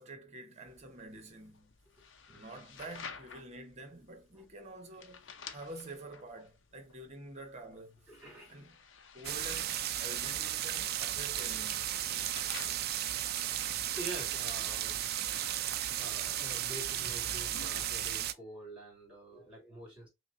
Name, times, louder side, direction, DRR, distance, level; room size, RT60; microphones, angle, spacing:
voice 1, 0.0-1.7 2.3-5.3 5.5-8.2 8.5-8.8 9.1-12.4 14.5-14.6, right 2 dB, 35° right, 0.9 m, -48 dB
sound 1, 0.7-18.1, left 5 dB, 60° left, 0.7 m, -52 dB
voice 2, 8.1-8.6 13.9-15.5 16.0-20.1, right 1 dB, 5° right, 2.5 m, -47 dB
sound 2, 9.2-18.3, right 12 dB, 50° right, 0.4 m, -35 dB
5.7 x 2.2 x 2.6 m
head